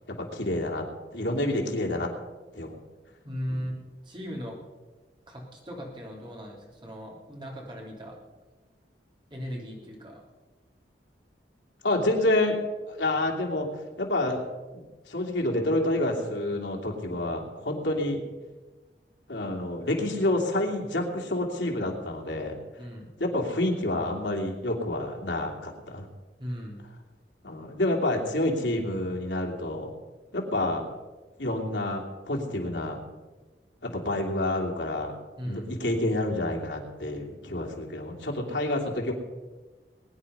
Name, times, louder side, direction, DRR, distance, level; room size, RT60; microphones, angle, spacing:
voice 1, 0.1-0.8 1.1-2.1 2.5-2.8 3.5-3.6 11.8-12.6 12.9-13.7 14.0-14.4 14.7-18.2 19.3-22.6 23.2-26.1 27.4-29.9 30.3-30.9 31.4-33.0 33.8-35.1 35.4-39.1, left 1 dB, 85° left, 0 dB, 2.8 m, -28 dB
voice 2, 3.2-3.7 4.0-4.6 5.3-8.2 9.3-10.2 22.8-23.1 26.4-26.8 35.4-35.7, equal, 25° right, -1 dB, 3.3 m, -37 dB
21.0 x 9.8 x 5.5 m, 1.2 s
head